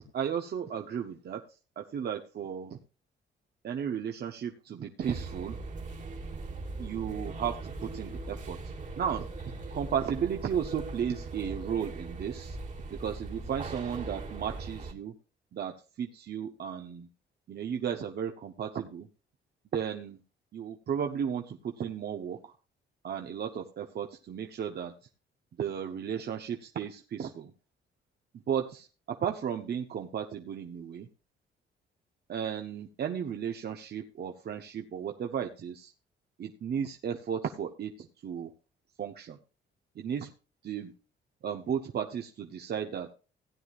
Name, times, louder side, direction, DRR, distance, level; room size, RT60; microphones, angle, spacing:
voice 1, 0.1-1.4 1.8-2.8 3.6-5.6 6.8-8.6 9.0-9.2 9.7-12.6 12.9-15.1 15.5-17.1 17.5-19.1 19.7-20.2 20.5-22.5 23.0-24.9 25.6-27.5 28.5-31.1 32.3-35.9 36.4-38.5 39.0-39.4 40.0-40.3 40.6-40.9 41.4-43.1, right 8 dB, 55° right, 4 dB, 1.0 m, -34 dB
sound 1, 5.0-14.9, right 3 dB, 40° right, 2.0 m, -40 dB
16.5 x 9.5 x 2.5 m, 0.34 s
cardioid pair, 90°, 20 cm